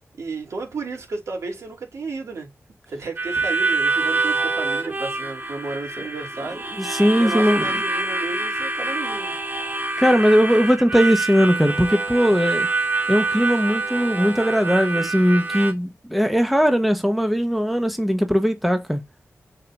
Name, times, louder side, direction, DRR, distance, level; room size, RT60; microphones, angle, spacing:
voice 1, 0.2-2.5 2.9-6.6 7.2-9.3, right 3 dB, 90° right, 3.4 m, -32 dB
Harmonica, 3.2-15.7, right 3 dB, 40° right, 1.9 m, -26 dB
voice 2, 6.8-7.7 10.0-12.7 13.1-19.0, equal, ahead, 1.2 m, -19 dB
6.6 x 6.5 x 2.7 m
wide cardioid pair, 105°, 5 cm